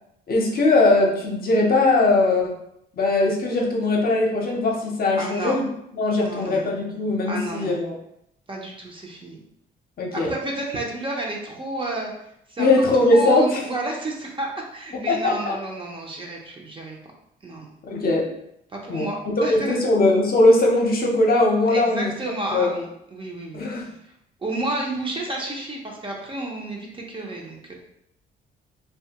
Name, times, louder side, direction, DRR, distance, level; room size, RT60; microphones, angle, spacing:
voice 1, 0.3-2.6 2.9-5.6 6.0-7.9 10.0-10.3 12.6-13.7 15.1-15.5 17.9-18.3 18.9-19.1 19.4-22.1 22.5-22.8 23.5-23.9, left 2 dB, 50° left, -1 dB, 0.7 m, -20 dB
voice 2, 5.2-5.6 6.2-6.7 7.3-7.7 8.5-9.4 10.1-12.1 12.5-12.7 12.9-17.0 17.4-17.7 18.7-19.8 21.7-23.6 24.4-27.7, right 1 dB, 25° right, -1 dB, 0.6 m, -31 dB
2.7 x 2.3 x 2.8 m, 0.77 s
cardioid pair, 90°, 20 cm